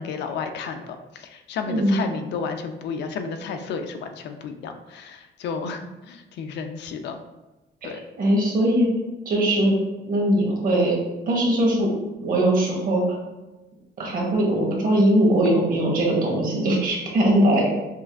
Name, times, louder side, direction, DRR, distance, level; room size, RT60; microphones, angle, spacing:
voice 1, 0.0-7.2 7.8-8.0, left 5 dB, 65° left, 6 dB, 0.4 m, -32 dB
voice 2, 1.7-2.0 7.8-7.9 8.2-8.9 9.3-9.7 10.1-11.0 11.3-11.9 12.2-13.2 14.0-17.7, right 1 dB, 50° right, -1 dB, 1.0 m, -20 dB
5.5 x 2.5 x 2.4 m, 1.1 s
cardioid pair, 165°, 19 cm